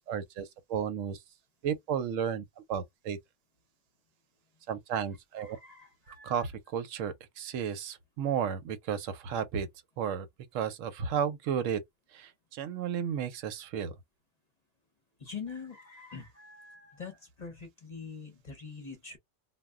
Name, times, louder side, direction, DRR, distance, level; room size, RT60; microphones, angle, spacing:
voice 1, 0.1-1.2 1.6-3.2 4.7-5.6 6.2-9.7 10.0-10.3 10.5-11.8 12.1-13.9, right 8 dB, 85° right, 1.0 m, -33 dB
voice 2, 5.4-6.3 15.2-19.2, left 5 dB, 40° left, 0.7 m, -44 dB
2.3 x 2.1 x 3.5 m
omnidirectional pair, 1.3 m